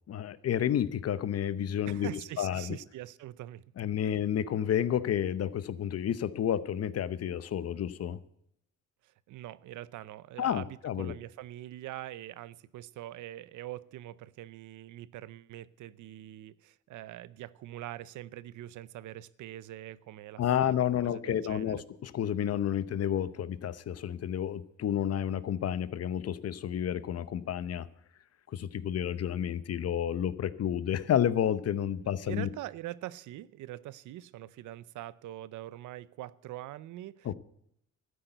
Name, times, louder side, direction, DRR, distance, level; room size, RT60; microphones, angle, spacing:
voice 1, 0.1-2.1 2.4-2.8 3.8-8.2 10.4-11.1 20.4-27.9 28.5-32.5 37.2-37.3, left 10 dB, 55° left, 16 dB, 0.8 m, -30 dB
voice 2, 1.8-3.6 4.0-4.1 9.0-20.7 21.0-21.8 32.0-37.3, right 14 dB, 80° right, 19 dB, 0.6 m, -44 dB
12.5 x 10.0 x 7.9 m, 0.75 s
cardioid pair, 90°, 30 cm